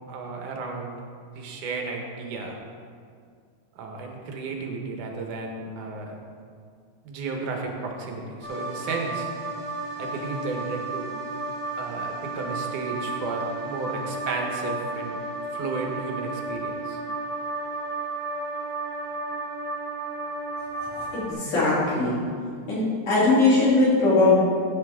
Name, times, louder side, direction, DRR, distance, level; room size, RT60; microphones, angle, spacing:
voice 1, 0.1-1.0 1.4-2.6 3.7-6.2 7.0-9.3 10.0-11.1 11.8-15.2 15.5-17.0, right 4 dB, 80° right, 1 dB, 2.7 m, -33 dB
sound 1, 8.4-21.3, right 2 dB, 30° left, 1.2 m, -33 dB
voice 2, 20.7-22.2 22.7-24.4, left 3 dB, 80° left, -9 dB, 4.7 m, -21 dB
14.5 x 7.8 x 3.6 m, 2.1 s
omnidirectional pair, 3.5 m